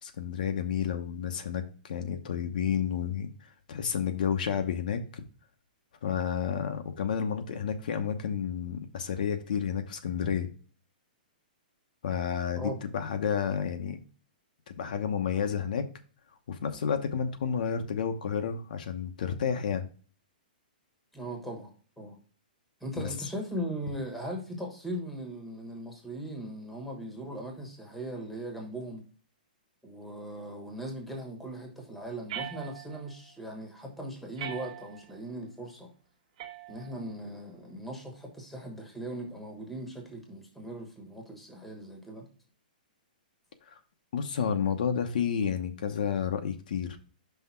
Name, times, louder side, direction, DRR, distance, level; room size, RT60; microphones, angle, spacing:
voice 1, 0.0-3.3 3.7-5.2 6.0-10.5 12.0-14.0 14.7-15.9 16.5-19.9 23.0-23.1 43.7-43.8 44.1-47.0, left 7 dB, 60° left, 0.9 m, -31 dB
voice 2, 21.1-21.7 22.0-22.2 22.8-29.0 29.8-35.9 36.7-42.3, right 1 dB, ahead, 1.3 m, -39 dB
sound 1, 32.3-33.2 34.4-35.2 36.4-37.2, right 10 dB, 45° right, 1.3 m, -41 dB
5.7 x 3.5 x 5.7 m
hypercardioid pair, 165°, 5 cm